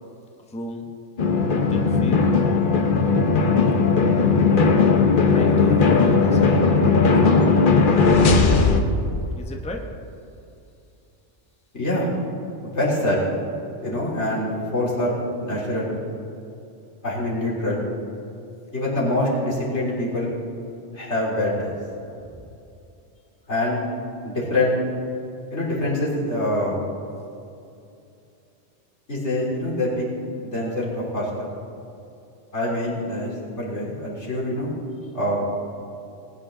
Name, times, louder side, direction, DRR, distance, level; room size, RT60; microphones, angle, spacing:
voice 1, 0.5-0.9 1.5-2.3 5.3-6.9 9.3-9.9 22.4-22.5, left 2 dB, 5° left, 2 dB, 0.9 m, -36 dB
sound 1, 1.2-8.8, left 4 dB, 50° left, 1.0 m, -17 dB
voice 2, 11.7-12.1 12.6-13.2 13.8-15.9 17.0-17.8 18.7-20.4 20.9-21.7 23.5-23.8 24.2-24.8 25.5-26.8 29.1-30.1 30.4-31.3 32.5-34.7 35.1-35.4, left 1 dB, 75° left, -6 dB, 3.7 m, -25 dB
20.0 x 9.8 x 3.8 m, 2.6 s
omnidirectional pair, 1.2 m